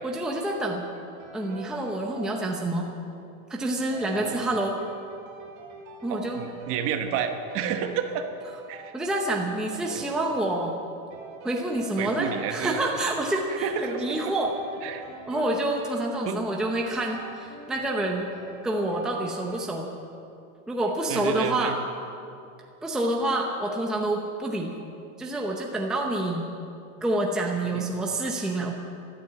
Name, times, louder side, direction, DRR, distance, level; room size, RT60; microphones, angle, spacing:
voice 1, 0.0-0.8 1.3-2.9 3.5-4.8 6.0-6.4 8.9-10.8 11.4-14.6 15.3-18.3 18.6-19.9 20.7-21.8 22.8-24.8 25.2-26.5 27.0-28.7, right 1 dB, ahead, 0 dB, 0.7 m, -27 dB
sound 1, 0.9-3.1 3.9-19.7, right 3 dB, 50° right, 4.1 m, -45 dB
voice 2, 6.1-8.2 8.7-8.9 9.9-10.0 12.0-12.8 13.6-14.3 14.8-15.0 16.2-16.4 21.1-21.8 27.7-27.9, right 8 dB, 35° right, 6 dB, 1.1 m, -30 dB
14.0 x 13.0 x 7.4 m, 2.5 s
supercardioid pair, 170°, 41 cm